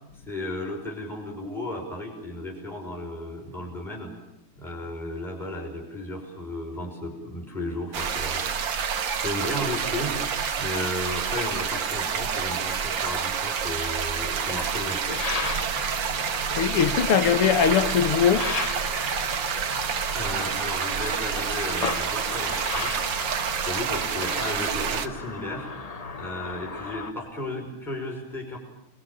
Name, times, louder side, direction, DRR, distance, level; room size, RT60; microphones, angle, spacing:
voice 1, 0.3-4.1 4.6-10.2 10.6-15.1 20.1-25.7 26.1-28.6, left 1 dB, ahead, 5.7 m, -34 dB
sound 1, 7.9-25.1, right 7 dB, 60° right, 2.0 m, -28 dB
sound 2, 15.1-27.1, left 4 dB, 55° left, 0.4 m, -36 dB
voice 2, 16.5-18.5, left 8 dB, 85° left, 2.5 m, -21 dB
29.0 x 21.5 x 8.8 m
omnidirectional pair, 2.4 m